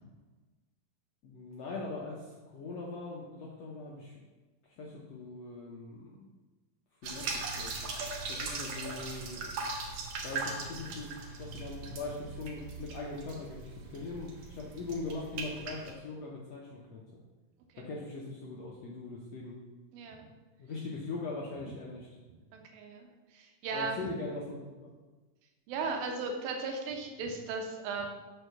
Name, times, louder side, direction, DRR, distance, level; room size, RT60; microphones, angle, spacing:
voice 1, 1.2-4.2 4.6-6.3 6.9-7.7 8.3-9.5 10.2-17.2 17.8-19.5 20.6-22.1 23.7-24.9, left 3 dB, 75° left, -3 dB, 1.5 m, -41 dB
sound 1, 7.0-15.9, right 4 dB, 65° right, 1.8 m, -39 dB
voice 2, 19.9-20.3 22.5-24.1 25.7-28.1, right 4 dB, 85° right, 3 dB, 2.8 m, -37 dB
6.6 x 4.5 x 6.6 m, 1.3 s
omnidirectional pair, 4.1 m